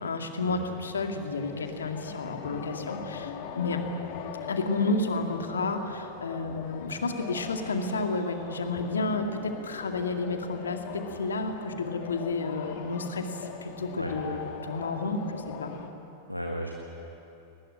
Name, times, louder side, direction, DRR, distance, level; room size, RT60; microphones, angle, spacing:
voice 1, 0.0-3.8 4.5-15.8, left 3 dB, 70° left, 5 dB, 2.2 m, -31 dB
sound 1, 1.4-15.9, left 7 dB, 50° left, 1.8 m, -41 dB
voice 2, 14.0-14.4 16.3-16.7, equal, 90° left, 1 dB, 1.7 m, -34 dB
21.5 x 20.0 x 9.9 m, 3.0 s
figure-of-eight pair, 90°, 0 cm